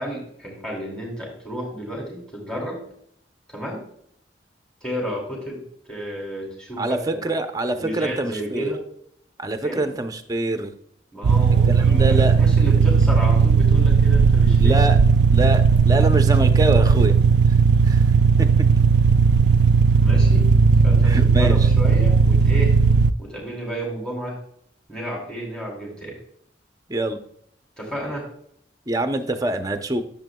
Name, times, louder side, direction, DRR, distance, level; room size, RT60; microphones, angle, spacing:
voice 1, 0.0-2.8 3.5-3.8 4.8-5.6 5.9-7.3 7.7-8.8 9.6-9.9 11.1-14.8 20.0-20.5 20.8-22.8 23.2-24.4 24.9-26.2 27.8-28.3, equal, 5° left, -3 dB, 2.3 m, -32 dB
voice 2, 6.8-8.7 9.4-10.7 11.7-12.4 14.6-15.0 15.3-17.1 17.9-18.0 18.4-18.5 21.0-21.6 26.9-27.2 28.9-30.0, right 1 dB, 20° right, 7 dB, 0.6 m, -25 dB
sound 1, 11.2-23.1, right 5 dB, 70° right, 0.4 m, -16 dB
11.0 x 7.0 x 2.3 m, 0.68 s
head